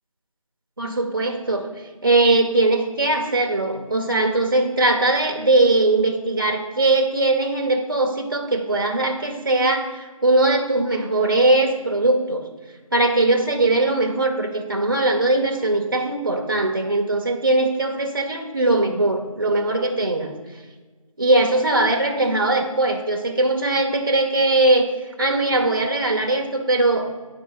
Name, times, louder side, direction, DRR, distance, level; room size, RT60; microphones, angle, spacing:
voice 1, 0.8-1.7 2.0-9.9 10.2-12.4 12.9-20.3 21.2-24.9 25.2-27.2, right 2 dB, 35° right, 1 dB, 0.7 m, -20 dB
9.3 x 4.6 x 3.9 m, 1.3 s
figure-of-eight pair, 170°, 18 cm